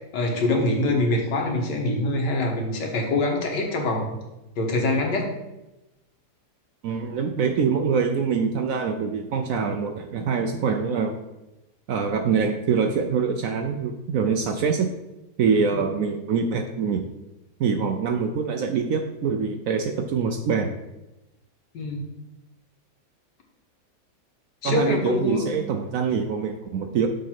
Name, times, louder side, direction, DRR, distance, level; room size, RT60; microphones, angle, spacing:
voice 1, 0.1-4.1 4.6-5.3 15.7-15.8 21.7-22.1 24.6-25.4, left 2 dB, 85° left, 1 dB, 1.9 m, -24 dB
voice 2, 6.8-11.2 11.9-14.9 15.4-17.0 17.6-20.7 24.6-27.1, right 6 dB, 70° right, 6 dB, 0.8 m, -24 dB
6.6 x 3.9 x 5.8 m, 0.96 s
omnidirectional pair, 1.8 m